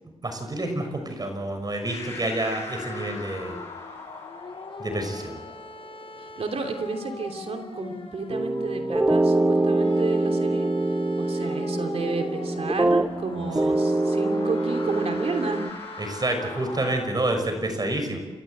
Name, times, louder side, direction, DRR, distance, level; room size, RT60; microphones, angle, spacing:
voice 1, 0.2-3.6 4.8-5.4 13.4-13.5 16.0-18.2, right 1 dB, 40° right, 5 dB, 5.9 m, -28 dB
sound 1, 1.8-16.9, left 3 dB, 90° left, 7.7 m, -43 dB
sound 2, 2.7-17.1, left 3 dB, 60° left, 4.5 m, -42 dB
voice 2, 6.2-10.7 11.2-15.6, right 4 dB, 70° right, 5 dB, 3.1 m, -32 dB
sound 3, 8.3-13.3 13.6-15.7, right 2 dB, 15° right, 0.7 m, -24 dB
29.5 x 13.5 x 7.9 m, 1.2 s
cardioid pair, 60°, 11 cm